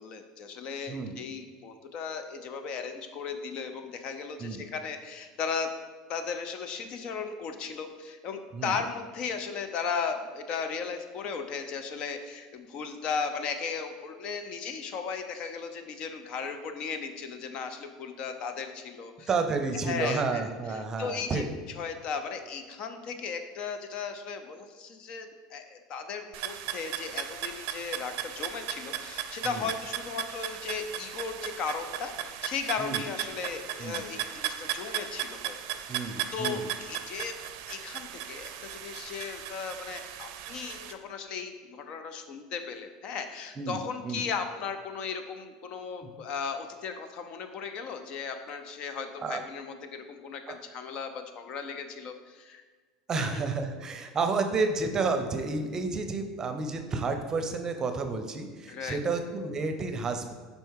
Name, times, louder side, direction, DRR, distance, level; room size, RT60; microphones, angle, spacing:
voice 1, 0.0-5.7 6.1-19.3 19.8-21.4 21.8-35.6 35.9-37.3 37.7-52.6 53.1-53.4 58.7-59.0, left 5 dB, 50° left, 8 dB, 0.6 m, -36 dB
voice 2, 19.3-21.5 29.4-29.6 32.8-33.0 33.8-34.0 35.9-36.7 43.6-44.2 49.2-49.4 50.5-50.6 53.1-60.3, right 4 dB, 30° right, 7 dB, 0.6 m, -31 dB
sound 1, 26.3-40.9, right 11 dB, 70° right, 0.5 m, -37 dB
5.3 x 4.5 x 4.7 m, 1.4 s
supercardioid pair, 105°, 2 cm